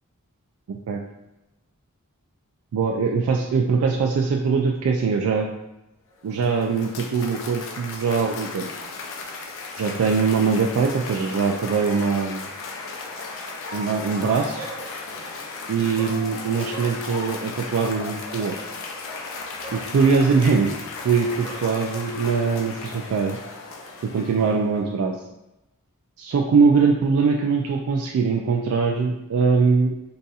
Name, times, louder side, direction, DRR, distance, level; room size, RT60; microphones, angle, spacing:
voice 1, 0.7-1.0 2.7-5.5 6.2-8.7 9.8-12.4 13.7-14.7 15.7-18.7 19.7-20.7 21.0-23.4 24.0-25.2 26.2-30.0, right 5 dB, 70° right, 1 dB, 0.3 m, -22 dB
Cheering / Applause, 6.1-24.7, left 3 dB, 65° left, 0.5 m, -36 dB
Dog, 14.5-15.3 15.9-22.6, right 1 dB, 50° right, 1.1 m, -43 dB
3.9 x 2.6 x 2.3 m, 0.93 s
head